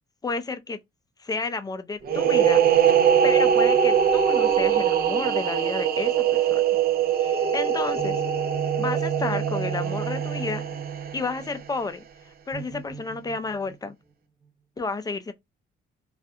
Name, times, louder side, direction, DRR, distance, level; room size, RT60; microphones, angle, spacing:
voice 1, 0.2-0.8 1.2-6.6 7.1-8.2 8.8-10.6 11.1-12.0 12.5-14.0 14.8-15.3, left 3 dB, 20° left, 0.4 m, -31 dB
sound 1, 2.0-11.6, right 9 dB, 50° right, 0.5 m, -22 dB
sound 2, 2.9-6.5 8.0-11.7 12.5-13.7, right 5 dB, 25° right, 0.9 m, -31 dB
2.4 x 2.1 x 2.6 m
cardioid pair, 90°, 20 cm